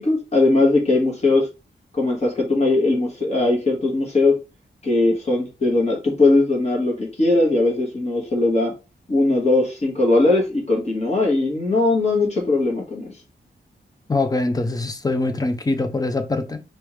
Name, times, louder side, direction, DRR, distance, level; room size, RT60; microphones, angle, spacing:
voice 1, 0.0-1.5 1.9-4.3 4.8-8.7 9.1-13.1, left 2 dB, 35° left, 1.6 m, -19 dB
voice 2, 14.1-16.6, left 2 dB, 20° left, 0.5 m, -23 dB
4.3 x 3.4 x 3.2 m
wide cardioid pair, 175°, 19 cm